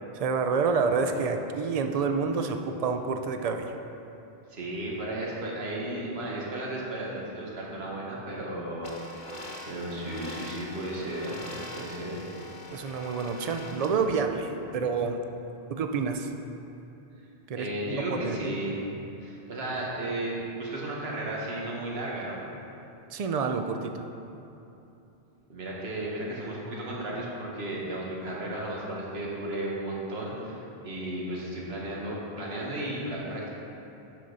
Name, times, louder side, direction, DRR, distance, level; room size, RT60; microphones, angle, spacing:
voice 1, 0.2-3.8 12.7-15.2 15.7-16.3 17.5-18.6 23.1-24.0, right 5 dB, 55° right, 6 dB, 0.4 m, -28 dB
voice 2, 4.5-9.2 9.7-11.4 11.7-12.2 17.5-18.8 19.2-22.4 25.5-33.5, right 1 dB, 75° right, -4 dB, 1.6 m, -34 dB
sound 1, 8.8-13.9, left 1 dB, 30° left, 1.0 m, -42 dB
11.5 x 4.9 x 4.0 m, 2.9 s
omnidirectional pair, 1.1 m